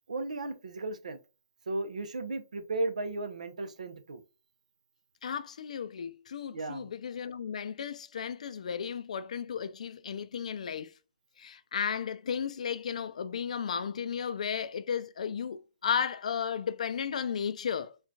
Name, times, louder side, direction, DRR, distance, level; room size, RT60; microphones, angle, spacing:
voice 1, 0.1-1.2 1.7-4.2 6.5-6.9, right 2 dB, 85° right, 0.7 m, -35 dB
voice 2, 5.2-10.9 11.4-18.0, left 7 dB, 70° left, 0.4 m, -34 dB
4.5 x 2.4 x 2.7 m
hypercardioid pair, 145°, 4 cm